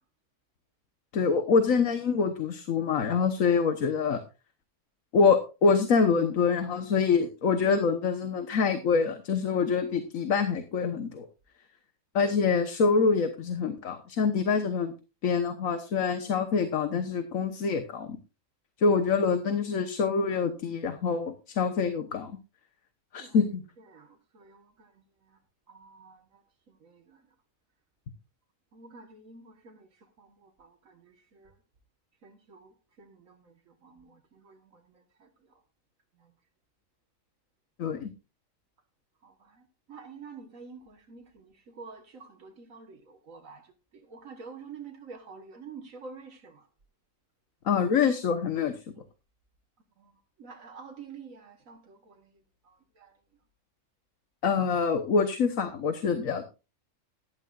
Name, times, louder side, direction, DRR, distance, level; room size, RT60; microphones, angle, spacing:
voice 1, 1.1-4.2 5.1-11.3 12.1-14.9 15.2-18.2 18.8-22.3 23.1-23.6 37.8-38.1 47.6-48.7 54.4-56.4, left 5 dB, 90° left, 1.5 m, -25 dB
voice 2, 23.8-25.4 25.7-27.2 28.7-31.6 32.2-35.6 36.2-36.3 39.2-46.7 50.0-50.1 50.4-53.1, right 5 dB, 80° right, 1.8 m, -49 dB
15.0 x 11.5 x 2.5 m
omnidirectional pair, 1.4 m